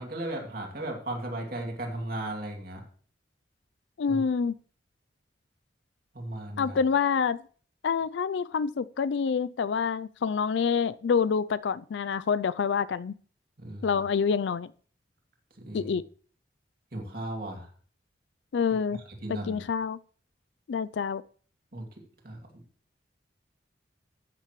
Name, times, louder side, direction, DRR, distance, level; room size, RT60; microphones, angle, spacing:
voice 1, 0.0-2.8 4.1-4.2 6.1-6.8 13.6-14.0 15.6-15.9 16.9-17.7 19.2-19.6 21.7-21.9 22.2-22.6, right 1 dB, 50° right, 2.6 m, -36 dB
voice 2, 4.0-4.5 6.6-7.4 7.8-13.1 13.8-14.7 15.7-16.0 18.5-19.0 19.3-20.0 20.7-21.2, left 6 dB, 70° left, 0.4 m, -27 dB
14.0 x 8.9 x 3.1 m
head